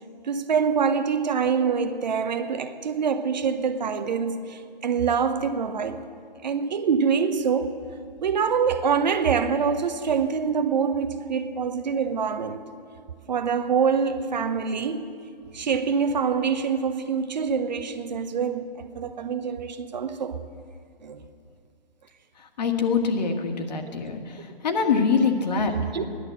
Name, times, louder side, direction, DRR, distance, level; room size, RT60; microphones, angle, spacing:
voice 1, 0.3-6.0 6.4-7.8 8.2-12.6 13.3-15.1 15.5-20.4 21.0-21.2 25.9-26.0, right 6 dB, 50° right, 1.0 m, -25 dB
voice 2, 22.6-24.2 24.6-25.7, left 5 dB, 45° left, 1.7 m, -23 dB
15.5 x 11.5 x 7.6 m
figure-of-eight pair, 145°, 29 cm